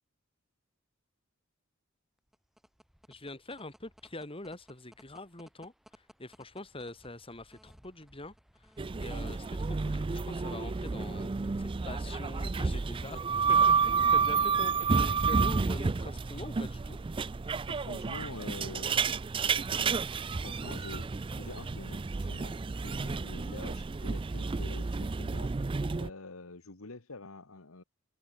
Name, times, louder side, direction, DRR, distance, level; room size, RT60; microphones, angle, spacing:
sound 1, 2.2-13.0, equal, ahead, 2.8 m, -62 dB
voice 1, 3.1-17.0 23.0-23.3, left 2 dB, 25° left, 3.1 m, -45 dB
sound 2, 8.8-26.1, right 5 dB, 25° right, 0.4 m, -30 dB
voice 2, 17.7-20.1 20.4-21.0 21.4-25.5 26.0-27.8, left 3 dB, 85° left, 1.7 m, -46 dB
open air
head